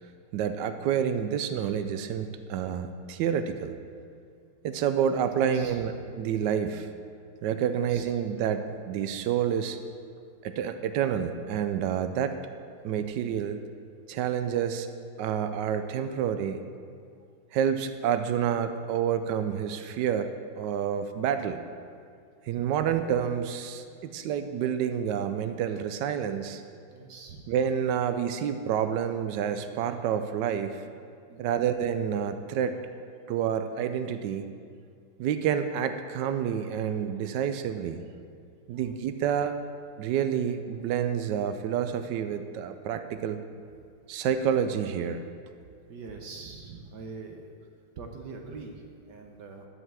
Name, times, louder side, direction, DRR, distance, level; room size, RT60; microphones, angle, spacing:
voice 1, 0.3-3.7 4.6-6.9 7.4-9.8 10.4-12.4 12.8-13.6 14.1-14.9 15.2-16.6 17.5-21.6 22.4-26.6 27.5-30.8 31.4-32.8 33.3-34.5 35.2-38.0 38.7-39.5 40.0-43.4 44.1-45.2, right 8 dB, 80° right, 9 dB, 1.0 m, -28 dB
voice 2, 5.3-5.8 7.7-8.0 11.7-12.0 26.9-27.5 31.3-31.5 38.7-38.9 45.9-47.5 48.0-49.7, right 4 dB, 60° right, 3 dB, 1.2 m, -43 dB
11.0 x 5.6 x 7.4 m, 2.3 s
omnidirectional pair, 2.4 m